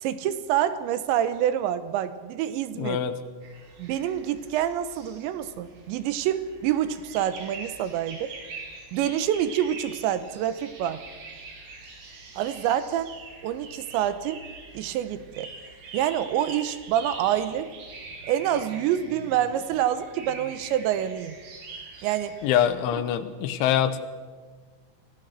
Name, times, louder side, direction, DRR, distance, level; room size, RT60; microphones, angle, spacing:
voice 1, 0.0-3.0 3.8-8.3 8.9-11.0 12.4-13.1 13.4-14.4 14.7-15.5 15.9-17.7 18.2-21.4 22.0-22.4, right 10 dB, 85° right, 12 dB, 3.2 m, -27 dB
voice 2, 2.8-3.1 22.4-24.0, left 10 dB, 90° left, 11 dB, 3.5 m, -24 dB
sound 1, 3.4-22.6, right 3 dB, 70° right, 5.3 m, -44 dB
24.5 x 16.5 x 6.5 m, 1.5 s
omnidirectional pair, 5.2 m